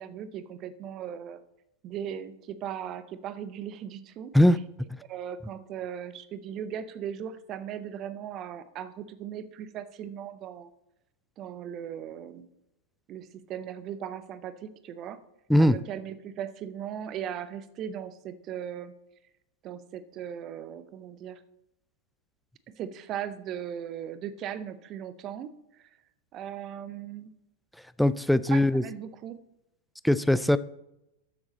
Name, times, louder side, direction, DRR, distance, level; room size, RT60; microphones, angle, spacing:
voice 1, 0.0-1.4 1.8-4.3 5.1-10.7 11.4-12.5 13.1-15.2 15.6-18.9 19.6-21.4 22.7-25.9 26.3-27.3 28.4-29.4, right 9 dB, 35° right, 0.7 m, -38 dB
voice 2, 28.0-28.8 30.0-30.6, left 1 dB, ahead, 0.4 m, -20 dB
12.5 x 7.2 x 4.2 m
figure-of-eight pair, 90°, 0 cm